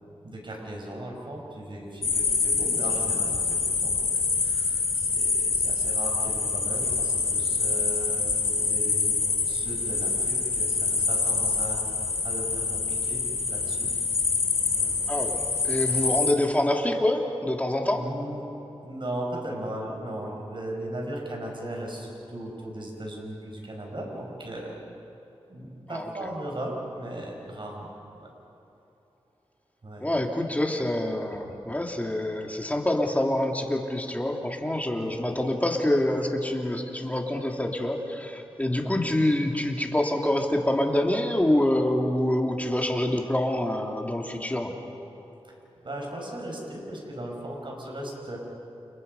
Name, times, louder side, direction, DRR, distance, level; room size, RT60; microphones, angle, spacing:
voice 1, 0.2-11.8 12.2-13.9 14.7-15.0 17.9-18.5 18.8-24.8 25.5-27.9 28.2-28.3 29.8-30.1 35.0-35.3 38.7-39.1 45.8-48.4, right 1 dB, 50° right, 0 dB, 6.1 m, -37 dB
sound 1, 2.0-16.3, left 4 dB, 75° left, 2.6 m, -26 dB
voice 2, 15.1-18.0 25.9-26.1 30.0-44.7, left 1 dB, 15° left, 1 dB, 3.0 m, -26 dB
29.5 x 29.5 x 5.5 m, 2.9 s
cardioid pair, 60°, 10 cm